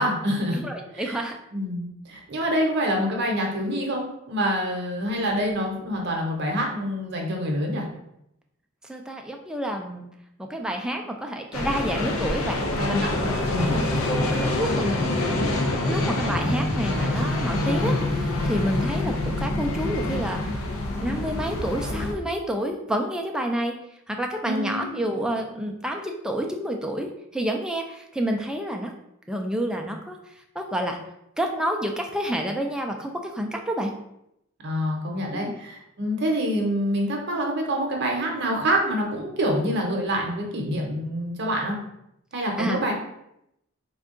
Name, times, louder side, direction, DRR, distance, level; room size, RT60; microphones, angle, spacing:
voice 1, 0.0-0.7 0.9-1.2 1.5-7.8 12.8-13.8 24.4-24.8 34.6-41.8 42.3-42.9, equal, 55° right, 1 dB, 0.8 m, -26 dB
voice 2, 0.5-1.4 8.9-10.0 10.4-13.2 13.6-15.5 15.8-20.6 21.0-23.7 24.1-28.9 29.3-30.2 30.6-31.0 31.4-33.9 35.3-35.5 42.6-42.8, equal, 5° right, 2 dB, 0.3 m, -29 dB
sound 1, 11.5-22.1, left 2 dB, 80° left, 0.5 m, -26 dB
3.5 x 2.3 x 3.7 m, 0.81 s
head